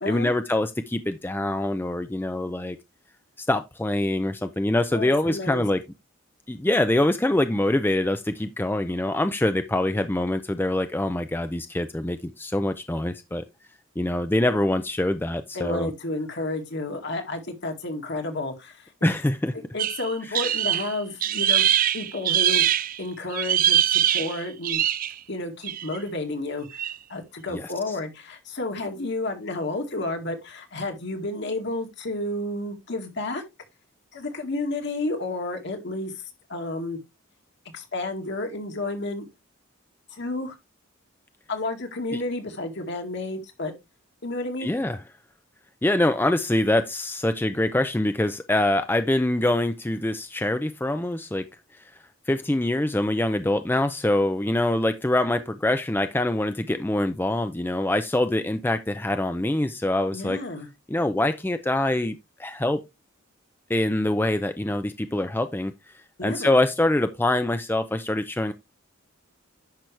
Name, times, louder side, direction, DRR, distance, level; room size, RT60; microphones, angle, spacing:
voice 1, 0.1-2.8 3.4-5.8 6.5-13.4 14.0-15.9 19.0-19.5 20.3-20.5 27.5-28.0 42.1-42.2 44.6-45.0 45.8-51.5 52.3-60.4 60.9-62.9 63.7-65.7 66.2-68.5, left 1 dB, 10° left, 0.5 m, -24 dB
voice 2, 4.9-5.6 15.5-19.1 19.5-21.7 21.9-24.8 25.3-26.8 27.1-33.4 34.1-36.1 36.5-37.0 37.7-39.3 40.1-40.5 41.5-43.7 44.2-44.8 60.1-60.7 66.2-66.5, left 2 dB, 60° left, 2.1 m, -31 dB
sound 1, 19.8-23.0 23.3-25.2 25.6-26.0 26.7-26.9, right 11 dB, 45° right, 0.4 m, -23 dB
10.5 x 6.1 x 3.3 m
head